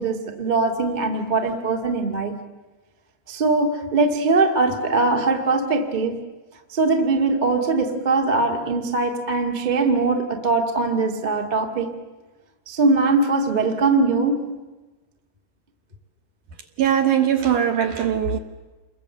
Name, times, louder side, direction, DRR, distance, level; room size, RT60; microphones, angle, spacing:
voice 1, 0.0-2.4 3.3-6.2 6.7-11.9 12.7-14.4, right 3 dB, 25° right, 1.0 m, -21 dB
voice 2, 16.8-18.4, right 9 dB, 65° right, 2.3 m, -20 dB
28.5 x 22.0 x 7.8 m
omnidirectional pair, 4.8 m